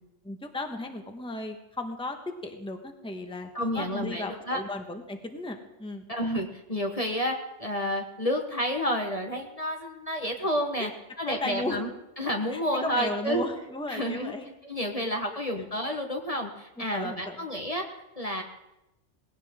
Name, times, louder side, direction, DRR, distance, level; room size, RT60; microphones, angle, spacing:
voice 1, 0.2-6.0 10.8-10.9 11.2-11.8 12.5-14.5 15.5-15.6 16.8-17.5, left 2 dB, 5° left, 4 dB, 1.3 m, -35 dB
voice 2, 3.5-4.6 6.1-10.9 11.2-11.9 12.2-13.4 13.9-14.3 14.6-17.9 18.2-18.4, equal, 30° left, 2 dB, 1.3 m, -30 dB
20.0 x 17.0 x 3.7 m, 0.93 s
omnidirectional pair, 1.3 m